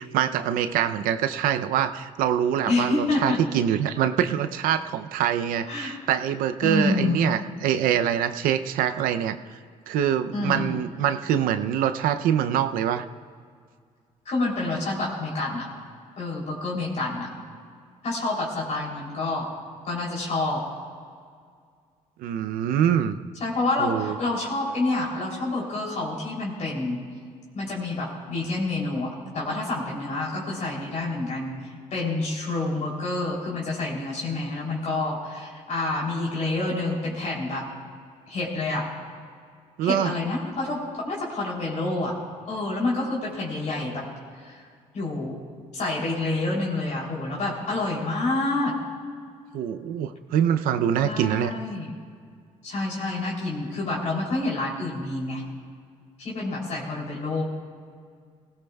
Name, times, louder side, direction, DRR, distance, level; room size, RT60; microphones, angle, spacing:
voice 1, 0.0-9.4 9.9-13.1 22.2-23.2 23.8-24.1 39.8-40.1 49.5-51.5, right 9 dB, 85° right, 10 dB, 0.6 m, -24 dB
voice 2, 2.6-3.4 5.7-6.0 6.6-7.2 10.3-10.8 14.3-15.7 16.2-17.3 18.0-19.5 19.8-20.6 23.4-27.0 27.5-31.5 31.9-37.6 38.3-38.9 39.8-42.2 42.5-44.0 44.4-44.6 44.9-45.4 45.7-48.7 51.0-51.9 52.6-55.4 56.2-57.4, left 2 dB, 55° left, -4 dB, 3.3 m, -28 dB
18.5 x 17.0 x 2.3 m, 2.1 s
cardioid pair, 85°, 14 cm